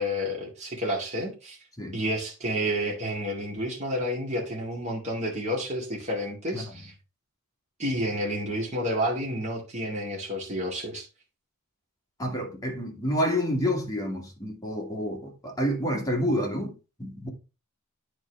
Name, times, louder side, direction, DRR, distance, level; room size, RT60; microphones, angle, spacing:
voice 1, 0.0-1.6 1.9-6.9 7.8-11.1, equal, 30° right, 2.0 m, -30 dB
voice 2, 6.5-6.9 12.2-17.3, equal, 15° left, 1.8 m, -29 dB
9.6 x 4.5 x 3.3 m
head